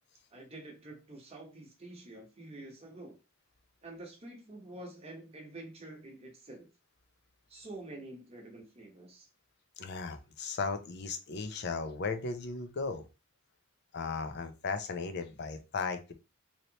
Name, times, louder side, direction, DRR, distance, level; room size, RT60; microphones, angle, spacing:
voice 1, 0.3-3.2 3.8-6.7 7.5-9.3, right 2 dB, 30° right, 1 dB, 0.9 m, -48 dB
voice 2, 9.8-13.0 13.9-16.1, left 4 dB, 50° left, 8 dB, 0.5 m, -36 dB
3.1 x 2.8 x 2.8 m, 0.29 s
head